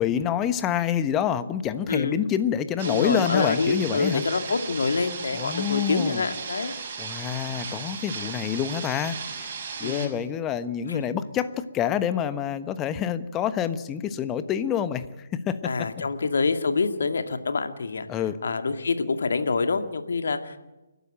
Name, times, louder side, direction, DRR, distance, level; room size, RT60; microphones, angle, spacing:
voice 1, 0.0-4.2 5.3-6.2 7.0-9.5 9.8-15.7 18.1-18.4, left 9 dB, 15° left, 12 dB, 1.2 m, -27 dB
voice 2, 1.9-2.2 2.8-6.7 9.8-10.2 10.9-11.2 15.6-20.6, left 4 dB, 60° left, 8 dB, 2.1 m, -26 dB
sound 1, 2.8-10.1, right 6 dB, 40° right, 6.2 m, -36 dB
29.5 x 12.5 x 9.0 m, 1.1 s
figure-of-eight pair, 135°, 0 cm